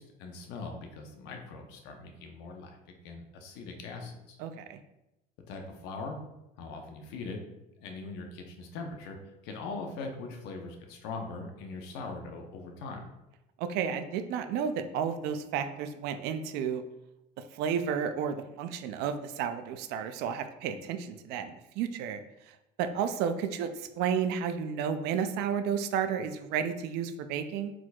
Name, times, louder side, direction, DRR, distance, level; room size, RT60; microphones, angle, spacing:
voice 1, 0.0-2.8 3.0-4.4 5.5-6.2 6.6-7.4 7.8-9.2 9.4-13.0, left 3 dB, 70° left, 3 dB, 0.8 m, -41 dB
voice 2, 4.4-4.8 13.6-16.8 17.5-22.2 22.8-23.7 24.0-27.7, right 7 dB, 60° right, 9 dB, 0.4 m, -32 dB
4.5 x 4.1 x 2.3 m, 0.92 s
cardioid pair, 150°, 19 cm